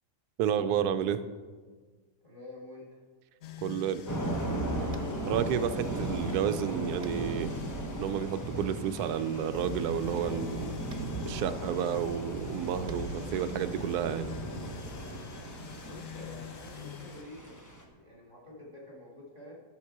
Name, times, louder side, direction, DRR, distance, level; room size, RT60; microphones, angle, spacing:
voice 1, 0.4-1.2 3.6-4.0 5.3-7.5 8.0-10.8 11.3-14.3, right 9 dB, 85° right, 11 dB, 1.1 m, -31 dB
voice 2, 2.2-3.0 15.8-19.5, left 1 dB, 30° right, -4 dB, 3.1 m, -48 dB
sound 1, 3.4-17.2, left 9 dB, 65° left, 0.9 m, -47 dB
Thunder / Rain, 4.1-17.8, right 1 dB, 15° left, 1.0 m, -36 dB
Tap, 4.9-5.2 7.0-7.2 9.0-9.1 10.9-11.0 12.8-13.0, right 5 dB, 60° right, 0.3 m, -54 dB
11.5 x 7.3 x 4.7 m, 1.4 s
omnidirectional pair, 1.6 m